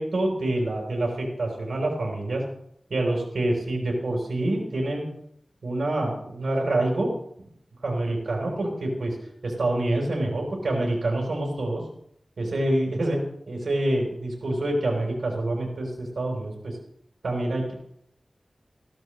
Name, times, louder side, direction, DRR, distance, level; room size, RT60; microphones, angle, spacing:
voice 1, 0.0-2.4 2.9-5.0 5.6-7.1 7.8-9.2 9.4-11.8 12.4-13.2 13.5-16.8 17.2-17.7, right 1 dB, 85° right, -1 dB, 4.1 m, -26 dB
15.5 x 12.5 x 3.3 m, 0.70 s
wide cardioid pair, 60°, 0 cm